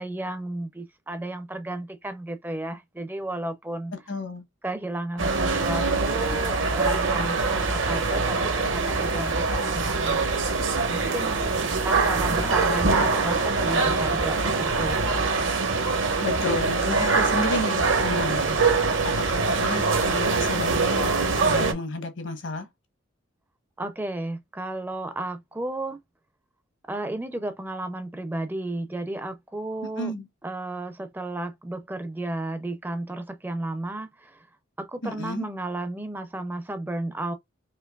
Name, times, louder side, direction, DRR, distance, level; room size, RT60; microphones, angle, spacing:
voice 1, 0.0-3.9 4.6-10.3 10.8-15.3 23.8-26.0 26.9-30.1 30.4-34.4 34.8-37.3, right 2 dB, 10° right, 0.4 m, -33 dB
voice 2, 3.9-4.5 16.2-18.6 19.0-22.7 29.8-30.3 35.0-35.5, left 2 dB, 70° left, 1.0 m, -31 dB
sound 1, 5.2-21.7, right 4 dB, 75° right, 1.1 m, -24 dB
4.4 x 2.8 x 2.3 m
head